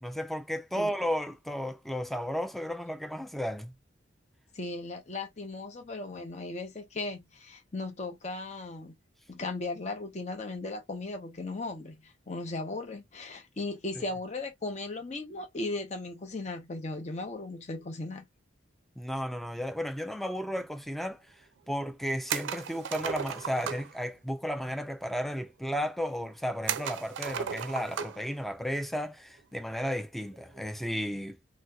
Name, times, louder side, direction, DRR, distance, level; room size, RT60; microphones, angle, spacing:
voice 1, 0.0-3.7 19.0-21.2 21.7-31.5, equal, ahead, 0.3 m, -34 dB
voice 2, 4.5-8.9 9.3-18.3, left 2 dB, 35° left, 0.7 m, -37 dB
sound 1, 22.3-23.9 26.7-28.3 28.6-28.7 30.3-30.6, right 8 dB, 75° right, 0.4 m, -35 dB
3.0 x 2.7 x 2.2 m
head